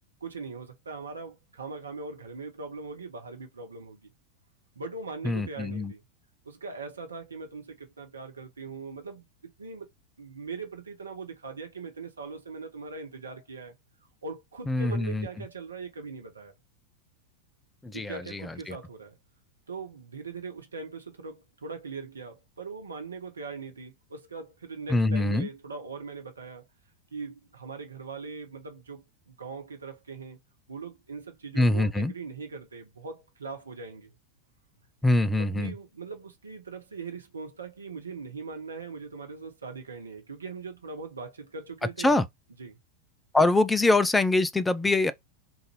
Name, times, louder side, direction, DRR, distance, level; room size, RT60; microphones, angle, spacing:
voice 1, 0.2-4.1 4.7-6.0 6.4-9.3 9.6-9.9 10.2-13.7 14.2-16.5 17.9-19.2 19.7-26.6 27.1-30.4 30.7-34.1 35.4-42.2 42.6-42.8, right 4 dB, 75° right, 1.0 m, -40 dB
voice 2, 5.2-5.9 14.7-15.3 17.8-18.8 24.9-25.5 31.6-32.1 35.0-35.7 42.0-42.3 43.3-45.1, left 2 dB, 10° left, 0.4 m, -24 dB
3.9 x 2.6 x 3.0 m
figure-of-eight pair, 90°, 0 cm